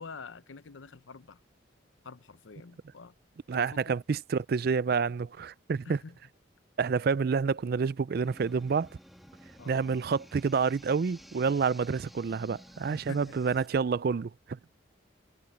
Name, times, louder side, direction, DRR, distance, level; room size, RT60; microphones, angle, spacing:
voice 1, 0.0-1.4 2.0-3.1 3.5-4.0 5.8-6.2 9.6-9.8 12.9-13.4, left 4 dB, 85° left, 0.7 m, -47 dB
voice 2, 3.5-6.0 6.8-8.9 9.7-14.7, right 5 dB, 50° right, 0.4 m, -28 dB
sound 1, 8.2-13.7, equal, ahead, 1.4 m, -53 dB
head